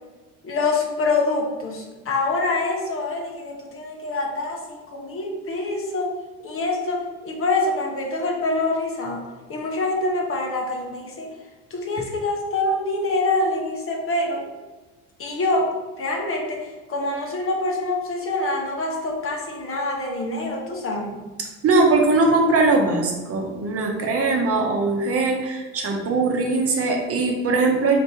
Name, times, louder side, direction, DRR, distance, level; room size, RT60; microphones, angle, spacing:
voice 1, 0.4-6.1 6.4-11.3 11.7-14.4 15.2-15.7 16.0-21.2, left 2 dB, 40° left, 1 dB, 1.0 m, -25 dB
voice 2, 21.6-28.0, right 3 dB, 40° right, 1 dB, 0.9 m, -20 dB
4.1 x 2.9 x 3.4 m, 1.2 s
supercardioid pair, 80°, 35 cm